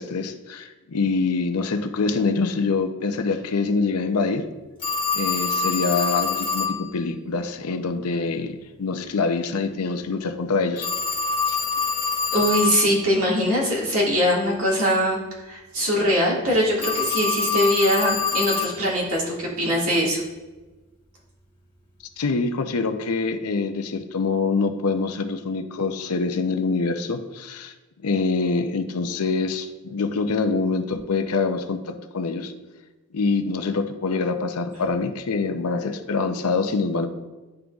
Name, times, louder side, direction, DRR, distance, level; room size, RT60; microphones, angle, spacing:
voice 1, 0.0-4.5 5.1-10.9 11.5-11.6 22.2-27.7 28.0-32.5 33.1-37.1, left 4 dB, 90° left, 7 dB, 0.6 m, -25 dB
Telephone, 4.8-6.8 10.8-12.8 16.8-18.8, left 5 dB, 25° left, 1.2 m, -25 dB
voice 2, 12.3-15.2 15.5-20.2, equal, 75° right, -4 dB, 1.9 m, -22 dB
11.0 x 3.8 x 2.4 m, 1.2 s
head